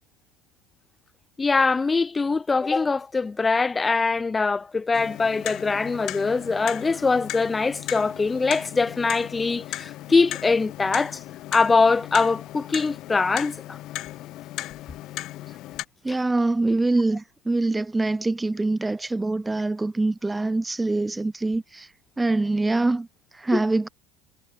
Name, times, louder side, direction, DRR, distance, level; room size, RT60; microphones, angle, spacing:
voice 1, 1.4-11.2 11.5-13.8 16.1-16.2 23.5-23.6, left 4 dB, 20° left, 0.7 m, -23 dB
Clock, 4.9-15.9, left 16 dB, 55° left, 3.3 m, -36 dB
voice 2, 16.0-21.9 22.2-23.1 23.3-23.9, right 2 dB, 10° right, 1.3 m, -24 dB
supercardioid pair, 100°, 0 cm